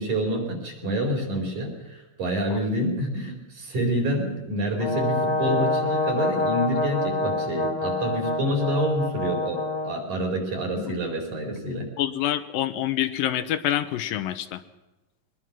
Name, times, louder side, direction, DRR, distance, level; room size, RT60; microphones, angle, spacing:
voice 1, 0.0-11.9, right 1 dB, 55° right, 2 dB, 5.7 m, -27 dB
Brass instrument, 4.8-10.0, left 2 dB, 60° left, 0.4 m, -26 dB
voice 2, 12.0-14.6, left 12 dB, 80° left, 11 dB, 2.5 m, -26 dB
23.0 x 20.5 x 6.0 m, 1.1 s
omnidirectional pair, 4.1 m